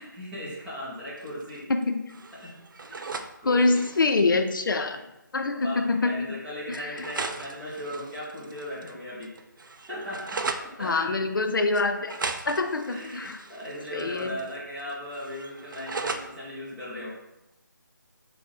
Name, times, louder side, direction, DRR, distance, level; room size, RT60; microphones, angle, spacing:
voice 1, 0.0-1.7 2.3-3.8 5.5-9.4 9.9-11.1 12.9-17.1, left 1 dB, 5° right, -11 dB, 0.4 m, -38 dB
sound 1, 1.2-1.8 2.1-3.3 3.6-4.1 5.2-5.3 5.6-5.7 6.7-8.9 9.2-10.7 11.7-14.5 14.8-16.3, right 4 dB, 70° right, 0.4 m, -37 dB
voice 2, 1.7-2.0 3.4-5.0 5.3-6.4 6.7-7.1 10.8-12.2 12.5-13.4 13.9-14.4, left 3 dB, 75° left, 6 dB, 0.4 m, -25 dB
4.3 x 2.0 x 3.5 m, 0.92 s
figure-of-eight pair, 160°, 11 cm